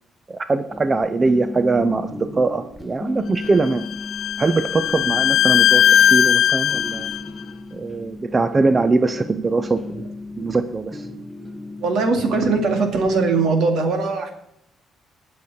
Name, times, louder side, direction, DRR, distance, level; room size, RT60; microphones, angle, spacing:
voice 1, 0.3-3.8 4.4-5.8 6.1-7.1 7.7-10.1 10.4-11.1, right 3 dB, 30° right, 11 dB, 0.6 m, -21 dB
sound 1, 0.7-13.5, left 2 dB, 5° left, 1.2 m, -36 dB
Bowed string instrument, 3.4-7.2, left 9 dB, 70° left, 0.7 m, -18 dB
voice 2, 11.8-14.3, right 4 dB, 75° right, 5 dB, 2.2 m, -20 dB
19.0 x 6.7 x 4.3 m, 0.79 s
cardioid pair, 90°, 0 cm